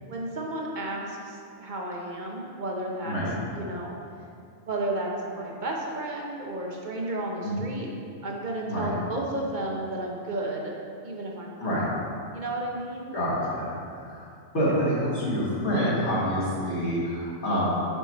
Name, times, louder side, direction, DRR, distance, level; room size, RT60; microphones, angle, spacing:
voice 1, 0.0-3.2 3.5-4.0 4.7-7.9 8.2-10.8 11.0-11.7 12.3-13.2 14.6-14.8, right 2 dB, 45° right, -1 dB, 0.8 m, -33 dB
voice 2, 13.1-14.3 14.5-17.8, equal, 60° left, -7 dB, 1.6 m, -27 dB
5.7 x 5.6 x 4.1 m, 2.4 s
omnidirectional pair, 1.3 m